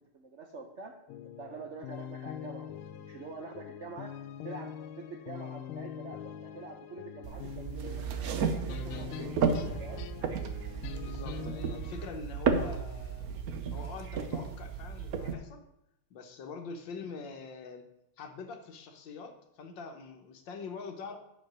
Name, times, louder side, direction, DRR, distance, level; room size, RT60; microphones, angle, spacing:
voice 1, 0.1-0.9 1.4-4.1 4.4-8.0 8.6-9.2 9.8-10.1, right 3 dB, 85° right, 3 dB, 0.6 m, -45 dB
sound 1, 1.1-12.1, left 9 dB, 80° left, 1.4 m, -44 dB
sound 2, 7.2-15.3, right 6 dB, 65° right, 0.9 m, -33 dB
voice 2, 11.0-13.3 13.7-15.6 16.1-17.9 18.2-21.2, left 4 dB, 65° left, 5 dB, 1.5 m, -44 dB
8.6 x 5.2 x 6.0 m, 0.83 s
omnidirectional pair, 2.4 m